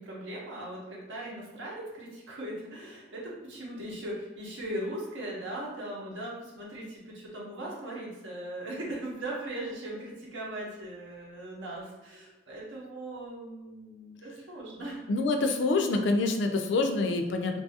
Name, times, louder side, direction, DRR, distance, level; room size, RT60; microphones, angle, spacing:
voice 1, 0.0-15.0, right 1 dB, 80° right, -4 dB, 0.8 m, -39 dB
voice 2, 15.1-17.6, left 3 dB, 70° left, 5 dB, 0.3 m, -26 dB
2.5 x 2.3 x 2.7 m, 1.1 s
head